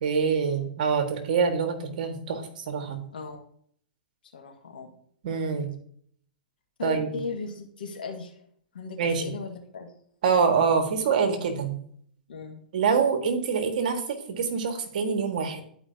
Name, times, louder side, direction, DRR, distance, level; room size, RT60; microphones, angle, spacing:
voice 1, 0.0-3.0 5.2-5.7 6.8-7.1 9.0-9.2 10.2-11.8 12.7-15.6, right 6 dB, 60° right, 6 dB, 1.6 m, -25 dB
voice 2, 4.3-4.9 6.8-8.5 8.7-9.9 12.3-12.6, left 4 dB, 75° left, 2 dB, 1.7 m, -37 dB
12.0 x 4.9 x 2.7 m, 0.62 s
hypercardioid pair, 110°, 5 cm